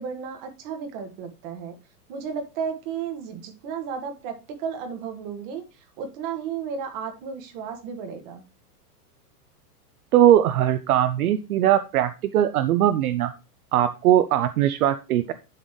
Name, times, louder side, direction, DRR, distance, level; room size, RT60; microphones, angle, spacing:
voice 1, 0.0-1.8 2.1-8.4, right 6 dB, 35° right, 5 dB, 1.9 m, -33 dB
voice 2, 10.1-13.3 13.7-15.3, right 11 dB, 65° right, 11 dB, 0.8 m, -20 dB
11.5 x 4.2 x 3.2 m, 0.30 s
supercardioid pair, 160°, 47 cm